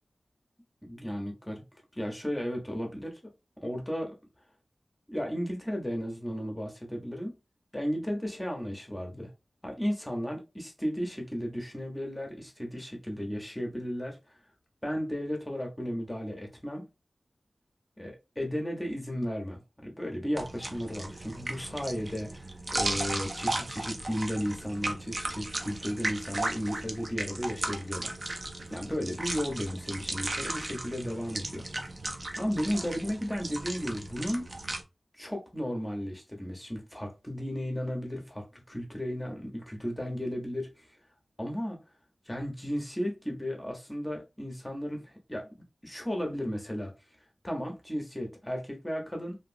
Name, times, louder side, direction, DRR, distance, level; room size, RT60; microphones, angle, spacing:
voice 1, 0.9-1.6 1.9-3.2 3.6-4.2 5.1-7.3 7.7-9.3 9.6-14.3 14.8-16.8 18.0-31.9 32.4-34.5 35.2-40.9 41.4-41.8 42.3-45.5 45.8-46.9 47.4-49.4, equal, 10° left, 0.7 m, -34 dB
sound 1, 20.4-34.8, right 2 dB, 45° right, 0.5 m, -36 dB
2.9 x 2.7 x 2.4 m
wide cardioid pair, 90°, 0 cm